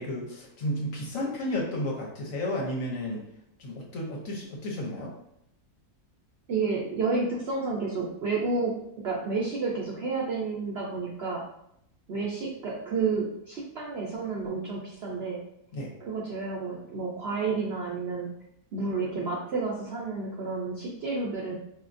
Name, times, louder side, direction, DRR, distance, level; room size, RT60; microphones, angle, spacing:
voice 1, 0.0-3.2 3.6-5.1 15.7-15.9, left 1 dB, 60° left, -2 dB, 1.1 m, -32 dB
voice 2, 6.5-8.7 9.0-11.4 12.1-15.4 16.0-18.3 18.7-21.6, right 4 dB, 65° right, -3 dB, 0.6 m, -30 dB
4.3 x 2.7 x 2.5 m, 0.77 s
omnidirectional pair, 1.7 m